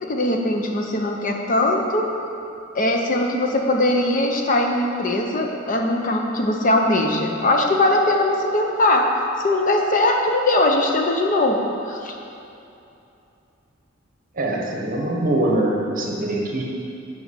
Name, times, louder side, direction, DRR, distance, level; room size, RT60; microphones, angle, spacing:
voice 1, 0.0-2.2 2.7-9.1 9.4-12.1, left 1 dB, 40° left, 2 dB, 0.7 m, -20 dB
voice 2, 14.3-16.6, right 1 dB, 45° right, -1 dB, 1.2 m, -23 dB
8.1 x 4.9 x 6.6 m, 2.7 s
head